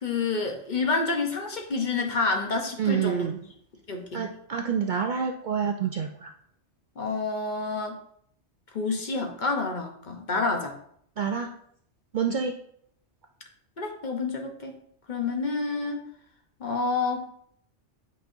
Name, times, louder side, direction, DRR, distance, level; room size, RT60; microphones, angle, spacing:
voice 1, 0.0-3.3 3.9-4.3 7.0-8.0 8.7-10.8 13.8-14.7 15.1-16.0 16.6-17.3, left 3 dB, 45° left, 3 dB, 0.9 m, -28 dB
voice 2, 2.8-3.4 4.1-6.3 11.2-11.5 12.1-12.5, right 7 dB, 60° right, 3 dB, 0.5 m, -27 dB
8.5 x 5.2 x 2.6 m, 0.68 s
omnidirectional pair, 1.2 m